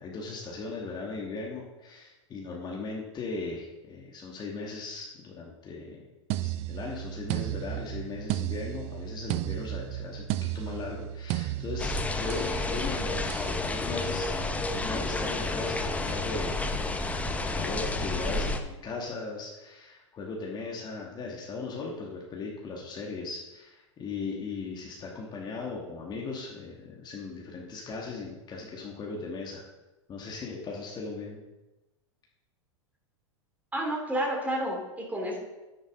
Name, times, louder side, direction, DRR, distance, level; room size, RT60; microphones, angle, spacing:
voice 1, 0.0-6.0 6.4-10.3 10.5-16.9 17.4-29.6 30.1-31.4, left 3 dB, 25° left, -2 dB, 1.9 m, -38 dB
sound 1, 6.3-12.6 13.3-13.6, right 14 dB, 40° right, 0.5 m, -34 dB
sound 2, 11.8-18.6, left 2 dB, 10° left, 0.9 m, -30 dB
voice 2, 33.7-35.4, right 1 dB, 10° right, -1 dB, 3.1 m, -30 dB
10.0 x 9.8 x 3.8 m, 1.1 s
hypercardioid pair, 100°, 16 cm